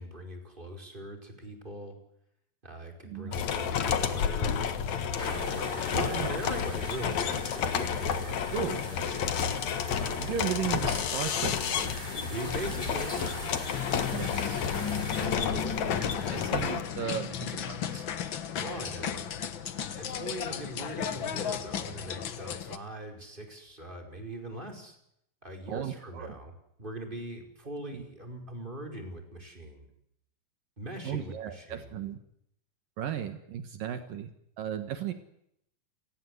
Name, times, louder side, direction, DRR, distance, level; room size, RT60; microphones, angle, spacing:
voice 1, 0.0-2.0 2.6-4.7 5.2-9.3 9.9-10.4 12.2-13.4 15.1-16.5 18.2-19.2 19.9-25.0 25.4-26.5 26.8-29.9 30.8-31.9, right 1 dB, 15° right, 3 dB, 4.9 m, -41 dB
voice 2, 3.0-3.4 5.9-6.3 8.5-8.8 10.2-11.9 14.1-14.6 15.5-15.6 16.3-18.1 25.7-26.3 27.9-28.0 31.0-32.2 33.0-34.3 34.6-35.1, right 9 dB, 70° right, 8 dB, 3.1 m, -35 dB
sound 1, 3.3-16.8, left 7 dB, 55° left, 2.6 m, -31 dB
sound 2, 5.2-15.3, equal, 15° left, 7.2 m, -42 dB
sound 3, 13.7-22.8, left 8 dB, 75° left, 1.1 m, -35 dB
30.0 x 19.5 x 8.0 m, 0.75 s
omnidirectional pair, 4.2 m